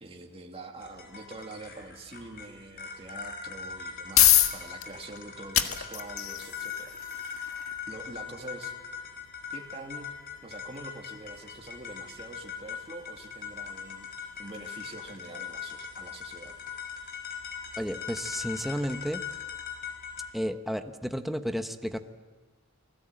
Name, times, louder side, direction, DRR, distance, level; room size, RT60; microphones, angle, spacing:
voice 1, 0.0-7.0 7.9-8.7 9.5-10.1 10.4-14.1 14.4-16.6, right 2 dB, 30° right, 1 dB, 2.3 m, -45 dB
sound 1, 0.8-20.3, left 7 dB, 50° left, 5.6 m, -41 dB
sound 2, 3.7-18.5, left 12 dB, 80° left, 1.8 m, -32 dB
voice 2, 17.8-19.2 20.3-22.0, equal, ahead, 6 dB, 1.0 m, -32 dB
29.5 x 20.0 x 9.0 m, 1.3 s
head